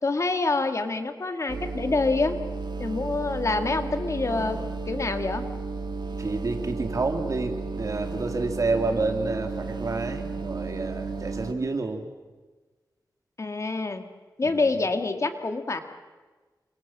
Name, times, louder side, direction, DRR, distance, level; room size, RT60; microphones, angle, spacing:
voice 1, 0.0-2.4 2.8-4.6 4.9-5.4 13.4-14.0 14.4-15.8, left 3 dB, 45° left, 7 dB, 2.1 m, -26 dB
sound 1, 1.5-11.5, right 4 dB, 85° right, 2.1 m, -33 dB
voice 2, 4.3-4.7 6.2-12.1 14.4-14.8, right 3 dB, 50° right, 5 dB, 3.0 m, -29 dB
28.0 x 25.0 x 7.5 m, 1.3 s
wide cardioid pair, 130°, 7 cm